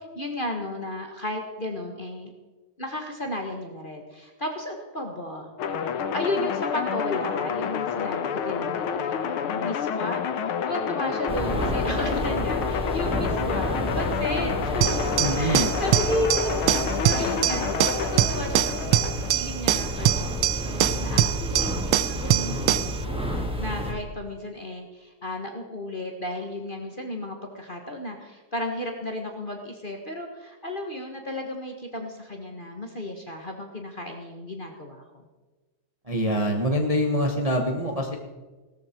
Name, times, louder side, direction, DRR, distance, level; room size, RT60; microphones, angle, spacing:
voice 1, 0.1-2.3 2.8-5.5 6.1-14.8 15.4-35.2, left 1 dB, 25° left, 3 dB, 1.5 m, -34 dB
sound 1, 5.6-19.3, left 7 dB, 90° left, 1.9 m, -29 dB
sound 2, 11.3-23.9, equal, 5° right, 1.6 m, -30 dB
sound 3, 14.8-23.0, right 12 dB, 80° right, 1.4 m, -24 dB
voice 2, 15.2-15.7 36.1-38.2, equal, 20° right, 1 dB, 1.1 m, -25 dB
17.0 x 13.5 x 4.5 m, 1.2 s
omnidirectional pair, 2.3 m